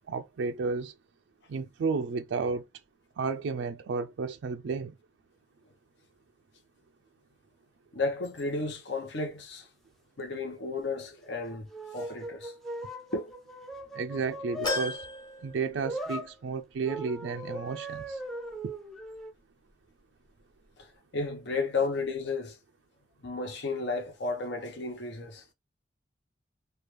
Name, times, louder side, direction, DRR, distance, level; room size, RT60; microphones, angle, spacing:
voice 1, 0.1-0.9 1.5-2.6 3.2-4.9 13.9-15.0 15.4-18.2 18.6-18.7, right 4 dB, 75° right, 0.3 m, -32 dB
voice 2, 7.9-9.7 10.2-11.7 11.9-12.5 13.1-13.3 20.8-22.6 23.2-25.4, left 3 dB, 70° left, 0.8 m, -33 dB
sound 1, 11.3-14.9 15.8-16.3 16.8-19.3, equal, ahead, 0.4 m, -39 dB
sound 2, 14.6-16.3 16.7-16.8 18.0-18.1, left 2 dB, 20° left, 1.0 m, -35 dB
3.3 x 2.3 x 3.0 m
head